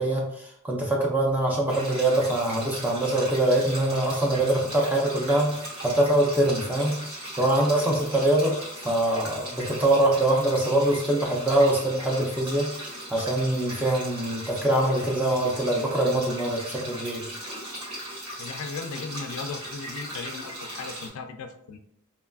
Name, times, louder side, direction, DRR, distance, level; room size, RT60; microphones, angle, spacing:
voice 1, 0.0-7.0 7.4-8.6 8.8-12.7 13.1-17.3, right 1 dB, 5° right, -2 dB, 0.4 m, -24 dB
sound 1, 1.7-21.1, right 1 dB, 80° right, 1.1 m, -38 dB
voice 2, 18.4-21.8, left 4 dB, 70° left, 7 dB, 0.3 m, -37 dB
2.9 x 2.3 x 2.3 m, 0.72 s
head